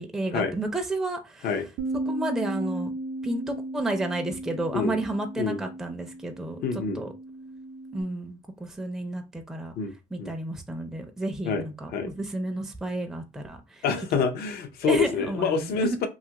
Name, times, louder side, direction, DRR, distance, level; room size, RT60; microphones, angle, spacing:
voice 1, 0.0-1.5 2.1-2.9 3.2-7.1 7.9-9.7 10.1-13.8 14.8-16.0, right 1 dB, ahead, 0.4 m, -31 dB
Bass guitar, 1.8-8.0, right 2 dB, 60° right, 0.5 m, -35 dB
voice 2, 6.6-7.0 9.8-9.9 10.2-10.3 11.5-11.6 11.9-12.1 13.8-16.1, left 5 dB, 65° left, 0.6 m, -26 dB
2.8 x 2.4 x 2.8 m
cardioid pair, 110°, 17 cm